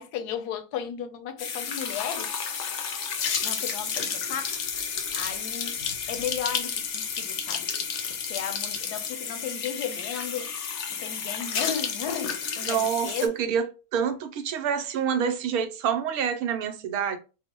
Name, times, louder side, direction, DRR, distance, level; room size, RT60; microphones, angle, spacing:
voice 1, 0.0-2.3 3.4-4.6 5.1-7.9 8.3-10.5 10.9-13.3, left 8 dB, 80° left, 1.2 m, -35 dB
sound 1, 1.4-13.3, left 6 dB, 65° left, 0.8 m, -31 dB
voice 2, 12.6-13.6 13.9-17.2, right 7 dB, 75° right, 1.0 m, -27 dB
4.5 x 2.1 x 2.8 m
omnidirectional pair, 1.7 m